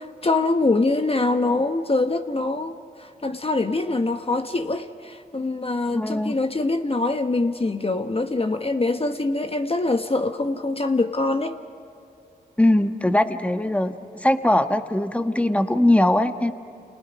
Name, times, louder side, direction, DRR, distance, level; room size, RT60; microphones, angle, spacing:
voice 1, 0.0-11.6, left 2 dB, 35° left, 6 dB, 1.2 m, -24 dB
voice 2, 5.9-6.3 12.6-14.0 14.2-16.5, left 1 dB, 5° left, 8 dB, 1.4 m, -20 dB
29.5 x 28.5 x 5.3 m, 2.7 s
supercardioid pair, 45°, 18 cm